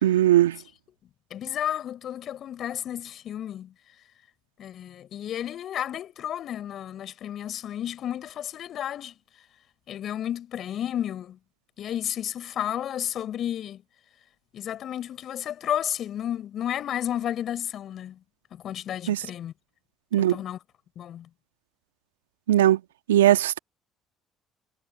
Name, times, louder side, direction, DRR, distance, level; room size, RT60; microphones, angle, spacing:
voice 1, 0.0-0.6 19.1-19.2 20.1-20.4 22.5-22.8 23.1-23.6, right 13 dB, 85° right, 1.8 m, -19 dB
voice 2, 1.3-3.7 4.6-9.1 9.9-11.4 11.8-13.8 14.5-18.2 18.5-19.5 20.2-20.6 20.9-21.3, left 10 dB, 55° left, 4.9 m, -32 dB
hypercardioid pair, 55°, 0 cm